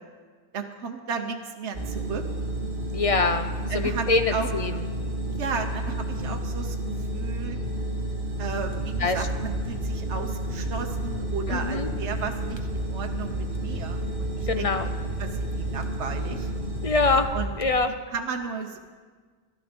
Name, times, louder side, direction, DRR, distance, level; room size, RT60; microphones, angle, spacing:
voice 1, 0.5-2.2 3.7-4.5 5.3-7.6 8.4-16.5 17.3-17.6 18.1-18.8, right 5 dB, 80° right, 4 dB, 1.2 m, -34 dB
sound 1, 1.7-17.2, right 1 dB, 50° right, 1.7 m, -31 dB
voice 2, 2.9-4.7 9.0-9.2 11.5-11.9 14.5-14.9 16.8-17.3 17.6-17.9, left 3 dB, 40° left, 9 dB, 0.5 m, -24 dB
sound 2, 8.4-17.9, right 3 dB, 30° right, 0.5 m, -38 dB
13.0 x 12.0 x 5.1 m, 1.5 s
omnidirectional pair, 1.2 m